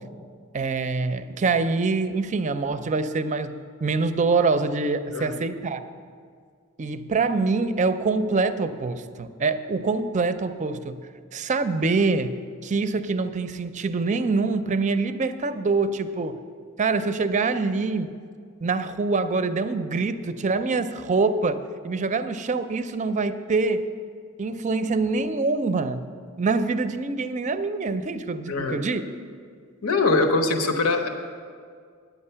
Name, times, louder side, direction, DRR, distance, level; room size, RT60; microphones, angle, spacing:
voice 1, 0.5-5.8 6.8-11.0 11.3-12.4 12.6-16.4 16.8-18.1 18.6-21.6 21.8-23.8 24.4-26.0 26.4-29.0, right 3 dB, 35° right, 10 dB, 0.5 m, -25 dB
voice 2, 28.5-28.8 29.8-31.1, left 3 dB, 85° left, 4 dB, 1.0 m, -22 dB
9.7 x 9.2 x 5.6 m, 2.1 s
head